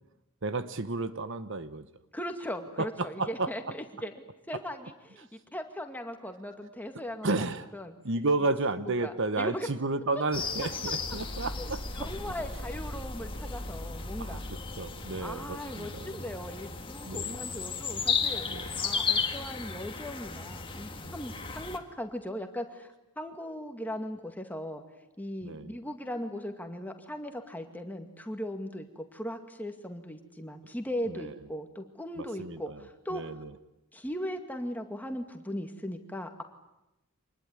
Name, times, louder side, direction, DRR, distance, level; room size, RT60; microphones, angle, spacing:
voice 1, 0.4-1.9 2.8-3.5 7.2-7.7 8.0-11.8 14.2-14.4 14.8-16.2 17.0-17.4 18.4-18.8 21.0-21.1 25.4-25.8 31.1-31.3 32.2-32.8 33.1-33.5, right 3 dB, 55° right, 12 dB, 1.1 m, -32 dB
voice 2, 2.1-7.5 7.7-7.9 8.9-9.7 11.6-11.7 12.0-14.4 15.2-18.5 18.8-24.8 25.2-33.2 33.9-36.4, equal, 10° left, 5 dB, 2.1 m, -38 dB
sound 1, 10.3-21.8, left 5 dB, 25° left, 1.9 m, -35 dB
sound 2, 11.0-15.9, equal, 60° left, 2.1 m, -41 dB
26.0 x 20.5 x 9.7 m, 0.94 s
head